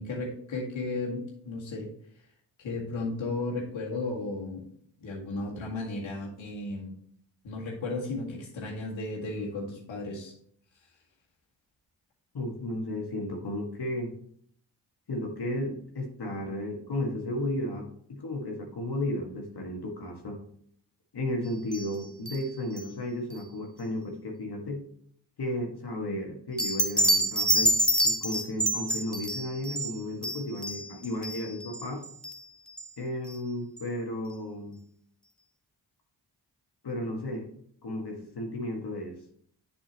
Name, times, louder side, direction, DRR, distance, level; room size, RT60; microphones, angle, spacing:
voice 1, 0.0-1.9 2.6-4.6 5.0-6.9 7.4-10.3, left 2 dB, 75° left, -2 dB, 2.1 m, -34 dB
voice 2, 12.3-14.1 15.1-20.4 21.1-24.8 25.4-27.7 28.0-32.0 33.0-34.8 36.8-37.5 37.8-39.2, left 1 dB, 55° left, 1 dB, 1.7 m, -34 dB
sound 1, 21.7-22.0 22.3-22.4 22.8-22.9 26.6-32.4 32.8-32.9 33.3-33.4 33.8-33.9, right 1 dB, ahead, 1.1 m, -27 dB
7.5 x 5.4 x 3.0 m, 0.63 s
supercardioid pair, 45°, 46 cm